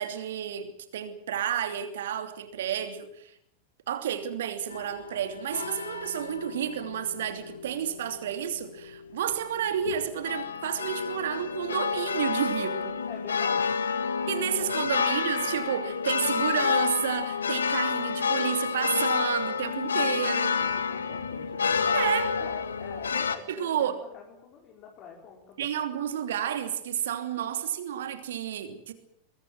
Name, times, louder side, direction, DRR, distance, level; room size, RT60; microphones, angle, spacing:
voice 1, 0.0-3.3 3.9-13.0 14.3-20.6 21.9-22.3 23.5-24.0 25.6-28.9, right 9 dB, 60° right, 8 dB, 2.9 m, -31 dB
sound 1, 4.7-23.4, left 6 dB, 70° left, 1.8 m, -29 dB
voice 2, 13.1-13.8 14.3-14.7 20.5-25.7, left 6 dB, 35° left, -1 dB, 5.0 m, -46 dB
23.5 x 22.0 x 7.7 m, 0.69 s
figure-of-eight pair, 90°, 0 cm